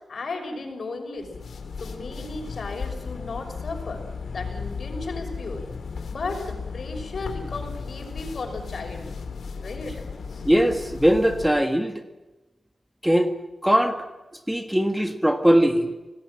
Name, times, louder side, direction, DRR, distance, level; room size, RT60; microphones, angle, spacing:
voice 1, 0.1-1.3 1.8-4.0 4.3-5.6 6.1-9.1 9.6-10.5, left 3 dB, 60° left, 4 dB, 6.0 m, -35 dB
sound 1, 1.2-11.7, left 5 dB, 85° left, 3.2 m, -35 dB
voice 2, 10.4-12.0 13.0-13.3 13.6-14.0 14.5-15.9, equal, 5° right, 7 dB, 1.6 m, -20 dB
27.5 x 19.0 x 7.6 m, 1.1 s
wide cardioid pair, 110°, 0 cm